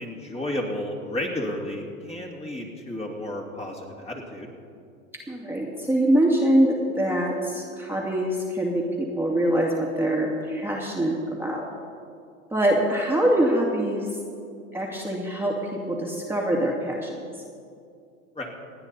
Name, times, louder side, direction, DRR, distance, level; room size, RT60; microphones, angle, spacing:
voice 1, 0.0-4.5 18.3-18.5, left 1 dB, 15° left, -1 dB, 2.7 m, -32 dB
voice 2, 5.3-11.6 12.5-14.1 14.7-17.2, right 1 dB, 5° right, -3 dB, 2.4 m, -24 dB
27.5 x 9.7 x 4.2 m, 2.3 s
hypercardioid pair, 90°, 42 cm